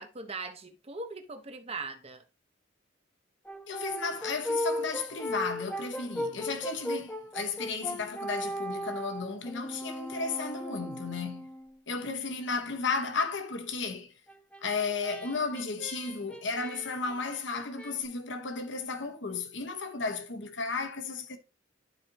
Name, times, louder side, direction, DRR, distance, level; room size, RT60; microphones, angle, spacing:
voice 1, 0.0-2.2, right 3 dB, 30° right, 1.1 m, -40 dB
Brass instrument, 3.4-11.8 14.3-17.9, equal, 5° left, 1.0 m, -37 dB
voice 2, 3.7-11.5 11.9-14.1 14.6-21.4, left 4 dB, 70° left, 1.2 m, -34 dB
12.0 x 4.3 x 2.9 m
head